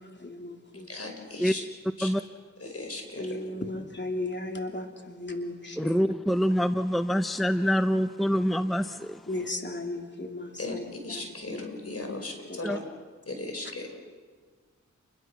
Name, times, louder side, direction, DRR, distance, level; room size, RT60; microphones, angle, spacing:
voice 1, 0.0-0.9 3.2-6.0 9.3-10.8 11.5-11.7 12.0-12.1 12.5-12.6, left 2 dB, 35° left, 3 dB, 3.1 m, -35 dB
voice 2, 0.9-1.6 2.0-2.1 2.6-3.4 10.6-12.8 13.3-13.9, left 2 dB, 50° left, 4 dB, 5.4 m, -37 dB
voice 3, 5.8-9.3 12.6-12.8, equal, ahead, 10 dB, 0.8 m, -25 dB
29.5 x 22.0 x 6.1 m, 1.5 s
cardioid pair, 45°, 30 cm